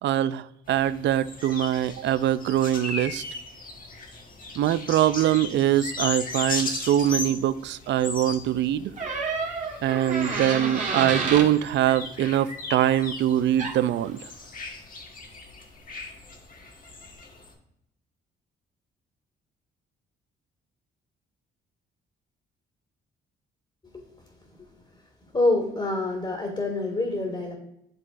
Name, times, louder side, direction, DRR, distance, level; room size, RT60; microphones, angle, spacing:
voice 1, 0.0-3.2 4.6-8.9 9.8-14.2, right 11 dB, 65° right, 15 dB, 0.4 m, -23 dB
sound 1, 0.7-17.5, left 3 dB, 45° left, 1.3 m, -37 dB
Door, 9.0-11.5 13.3-13.4 13.6-14.0, right 4 dB, 40° right, 1.6 m, -29 dB
voice 2, 25.3-27.5, left 2 dB, 25° left, 0 dB, 1.9 m, -26 dB
11.0 x 3.7 x 2.5 m, 0.79 s
cardioid pair, 90°, 20 cm